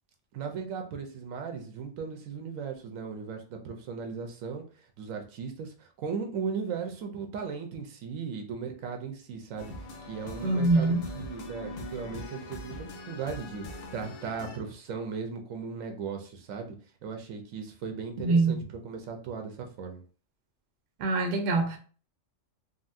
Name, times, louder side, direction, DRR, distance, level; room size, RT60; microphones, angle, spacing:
voice 1, 0.3-4.6 5.0-9.7 10.0-16.7 17.0-20.0, right 6 dB, 85° right, 1.1 m, -37 dB
sound 1, 9.6-14.6, left 2 dB, 60° left, 0.8 m, -41 dB
voice 2, 10.4-11.0 18.2-18.6 21.0-21.8, right 3 dB, 65° right, 0.8 m, -24 dB
3.9 x 2.1 x 2.5 m
omnidirectional pair, 1.3 m